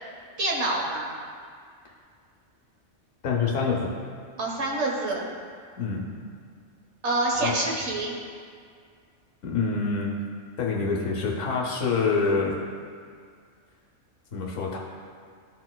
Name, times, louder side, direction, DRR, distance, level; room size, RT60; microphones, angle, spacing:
voice 1, 0.4-1.1 4.4-5.2 7.0-8.2, right 2 dB, 65° right, -2 dB, 1.4 m, -26 dB
voice 2, 3.2-4.0 5.8-6.1 7.4-7.5 9.4-10.2 10.6-12.6 14.3-14.8, left 4 dB, 80° left, -2 dB, 1.2 m, -26 dB
13.0 x 4.3 x 2.2 m, 2.1 s
omnidirectional pair, 1.3 m